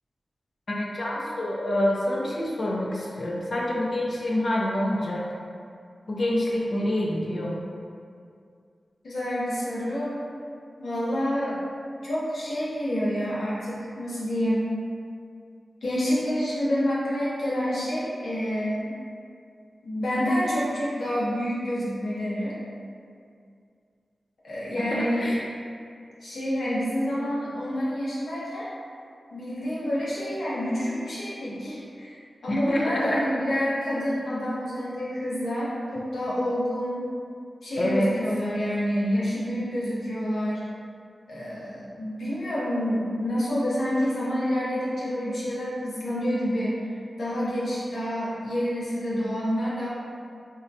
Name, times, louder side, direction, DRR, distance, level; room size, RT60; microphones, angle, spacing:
voice 1, 0.7-5.2 6.1-7.6 24.7-25.4 32.5-33.2 37.8-38.1, left 1 dB, 50° left, -4 dB, 0.4 m, -27 dB
voice 2, 9.0-10.2 10.8-11.6 12.0-14.7 15.8-18.9 19.8-22.5 24.4-25.3 26.2-28.7 29.3-37.0 37.6-40.6 41.3-49.9, equal, 85° left, -8 dB, 0.8 m, -28 dB
3.7 x 2.1 x 2.7 m, 2.3 s
wide cardioid pair, 125°, 0 cm